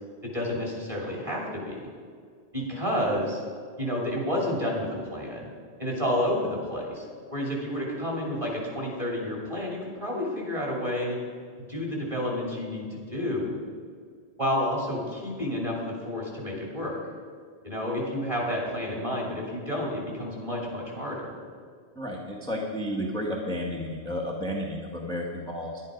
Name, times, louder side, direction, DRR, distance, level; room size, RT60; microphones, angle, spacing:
voice 1, 0.2-1.8 2.5-3.4 3.8-5.5 5.8-11.2 11.6-13.6 14.4-17.0 17.6-21.3, left 1 dB, 30° right, -2 dB, 2.9 m, -30 dB
voice 2, 21.9-25.8, equal, 5° left, -1 dB, 1.1 m, -32 dB
11.0 x 10.5 x 5.1 m, 2.1 s
omnidirectional pair, 1.1 m